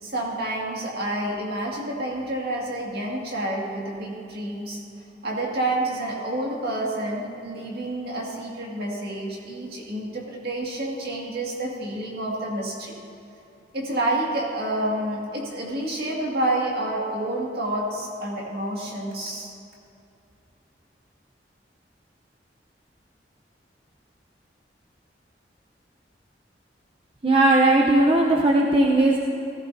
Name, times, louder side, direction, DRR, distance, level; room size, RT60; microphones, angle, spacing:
voice 1, 0.0-4.8 5.2-12.9 13.7-19.5, right 1 dB, 60° right, -2 dB, 2.2 m, -29 dB
voice 2, 27.2-29.2, right 2 dB, 30° right, -2 dB, 0.8 m, -18 dB
16.5 x 15.0 x 2.8 m, 2.7 s
head